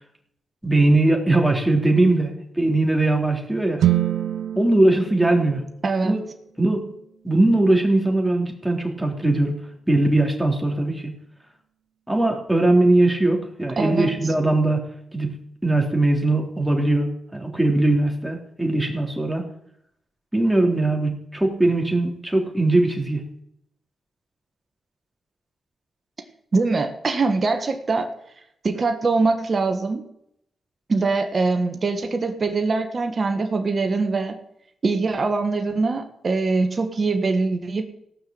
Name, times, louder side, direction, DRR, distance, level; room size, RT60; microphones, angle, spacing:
voice 1, 0.6-2.3 2.5-3.8 4.5-5.6 6.0-6.2 6.6-6.9 7.2-9.6 9.9-11.1 12.1-14.8 15.1-15.3 15.6-19.5 20.3-23.2, right 2 dB, 5° right, 1 dB, 3.5 m, -20 dB
sound 1, 3.8-7.8, right 12 dB, 80° right, 0.7 m, -27 dB
voice 2, 5.8-6.2 13.8-14.1 26.5-28.1 28.6-30.0 30.9-34.4 34.8-37.8, right 3 dB, 45° right, 6 dB, 1.6 m, -23 dB
17.0 x 6.1 x 7.8 m, 0.76 s
cardioid pair, 55°, 0 cm